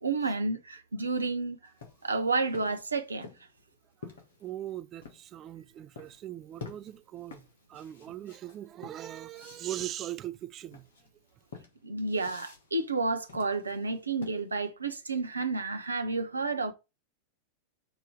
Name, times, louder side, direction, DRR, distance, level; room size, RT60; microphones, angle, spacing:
voice 1, 0.0-1.6 2.0-3.3 11.8-16.7, right 3 dB, 80° right, 0.8 m, -30 dB
sound 1, 1.7-5.3 6.0-6.2 6.6-14.7, left 4 dB, 60° left, 1.8 m, -50 dB
voice 2, 4.4-7.4 7.7-10.9, right 13 dB, 30° right, 0.4 m, -40 dB
6.4 x 3.0 x 4.9 m
figure-of-eight pair, 90°, 0 cm